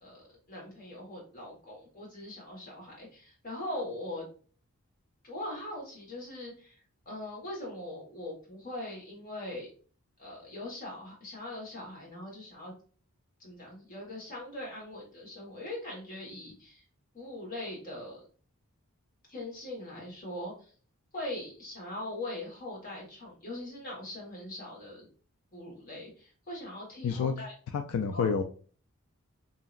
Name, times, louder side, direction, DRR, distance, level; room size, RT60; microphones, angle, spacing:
voice 1, 0.0-4.2 5.2-6.8 7.0-9.7 10.2-12.7 13.4-16.8 17.1-18.2 19.3-20.5 21.1-25.1 25.5-27.5 28.1-28.3, left 1 dB, 40° left, -3 dB, 1.4 m, -41 dB
voice 2, 27.0-27.3 27.7-28.4, left 6 dB, 80° left, 6 dB, 0.3 m, -28 dB
2.8 x 2.8 x 2.4 m, 0.40 s
head